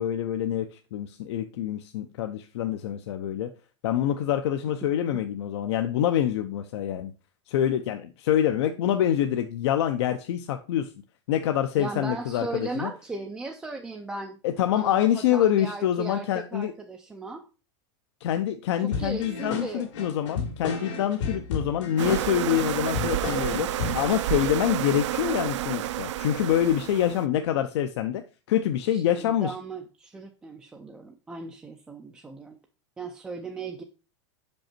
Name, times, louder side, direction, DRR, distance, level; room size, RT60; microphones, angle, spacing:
voice 1, 0.0-3.5 3.8-7.1 7.5-10.9 11.3-12.9 14.4-16.7 18.2-23.7 23.9-28.2 28.5-29.5, left 10 dB, 65° left, 7 dB, 0.6 m, -26 dB
voice 2, 11.8-14.4 14.7-17.5 19.0-19.9 28.9-32.6 33.0-33.8, right 3 dB, 5° right, 2 dB, 0.3 m, -37 dB
sound 1, 18.9-24.1, left 5 dB, 85° left, 2.3 m, -33 dB
sound 2, 22.0-27.2, right 13 dB, 80° right, 0.5 m, -30 dB
5.9 x 5.3 x 4.3 m, 0.33 s
supercardioid pair, 170°, 15 cm